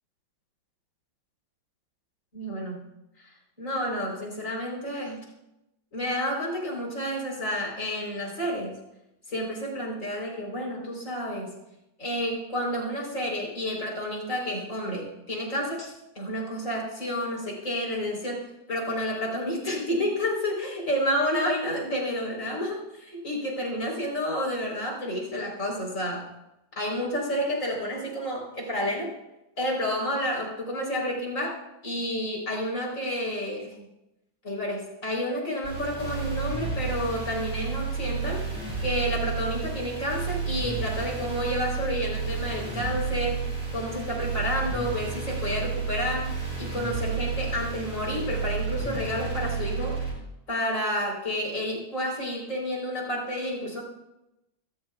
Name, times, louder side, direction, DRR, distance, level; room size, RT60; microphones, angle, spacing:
voice 1, 2.3-2.9 3.2-3.3 3.6-5.3 5.9-8.7 9.3-11.5 12.0-26.3 26.7-29.1 29.6-31.5 31.8-33.9 34.4-38.4 38.8-43.4 43.7-50.0 50.5-53.8, equal, 40° left, -2 dB, 4.3 m, -30 dB
sound 1, 35.6-50.1, right 5 dB, 65° right, 7.7 m, -31 dB
25.5 x 14.0 x 2.4 m, 0.92 s
omnidirectional pair, 2.2 m